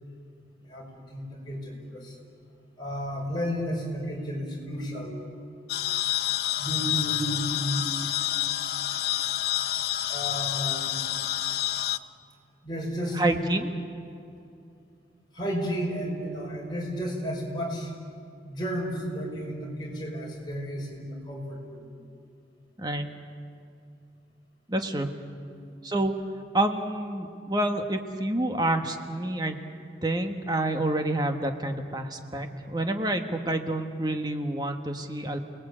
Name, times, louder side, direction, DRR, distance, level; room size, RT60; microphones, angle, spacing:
voice 1, 0.6-2.2 2.8-5.4 6.6-7.9 10.1-11.0 12.6-13.2 15.3-17.9 18.4-21.9 25.5-25.6, equal, 25° left, -2 dB, 5.5 m, -33 dB
sound 1, 5.7-12.0, left 13 dB, 55° left, 0.7 m, -28 dB
voice 2, 13.1-13.7 22.8-23.1 24.7-25.1 25.8-26.1 26.5-29.6 30.0-35.4, right 1 dB, 20° right, 5 dB, 1.4 m, -28 dB
29.0 x 19.5 x 8.7 m, 2.5 s
head